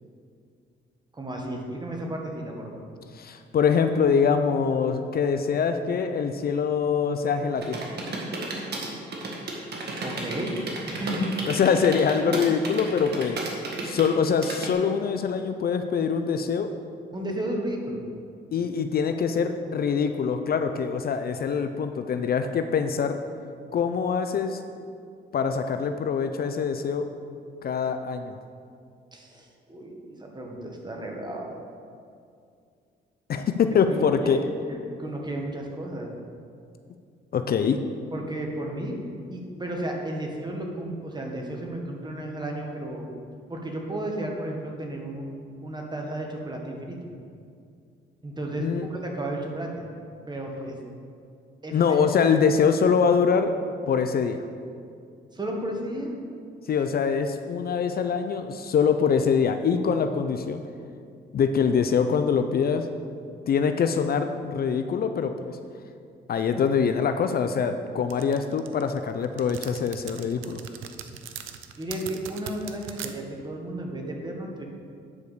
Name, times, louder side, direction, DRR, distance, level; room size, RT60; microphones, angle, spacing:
voice 1, 1.1-2.8 10.0-10.6 10.9-11.3 17.1-18.0 29.1-31.5 33.9-36.1 38.1-38.9 39.3-43.1 43.5-45.3 45.6-47.1 48.2-49.9 50.3-50.7 51.6-52.0 55.3-56.1 71.8-74.6, right 1 dB, 20° right, 1 dB, 1.6 m, -33 dB
voice 2, 3.1-7.8 11.5-13.4 13.8-16.7 18.5-23.2 23.7-24.6 25.3-27.1 27.6-28.4 33.3-34.4 37.3-37.8 48.6-48.9 51.7-53.5 53.9-54.4 56.7-60.6 61.3-62.9 63.5-65.6 66.3-70.6, left 6 dB, 50° left, 8 dB, 0.5 m, -24 dB
sound 1, 7.6-14.7, right 2 dB, 55° right, 1.8 m, -33 dB
sound 2, 68.1-73.1, right 10 dB, 80° right, 0.6 m, -39 dB
9.5 x 4.8 x 6.8 m, 2.3 s
cardioid pair, 90°, 20 cm